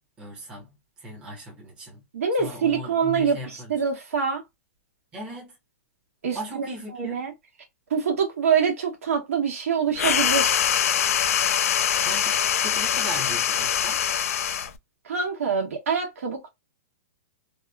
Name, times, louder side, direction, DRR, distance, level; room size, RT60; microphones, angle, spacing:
voice 1, 0.2-2.0 2.4-3.7 5.1-5.6 6.3-7.2 11.7-12.4 12.6-14.1, equal, 15° right, 0.8 m, -38 dB
voice 2, 2.1-3.4 3.7-4.4 6.2-6.7 6.9-7.3 7.9-10.6 15.0-16.5, right 6 dB, 75° right, 1.2 m, -25 dB
sound 1, 10.0-14.8, left 9 dB, 80° left, 0.3 m, -23 dB
2.8 x 2.1 x 2.3 m
hypercardioid pair, 175°, 8 cm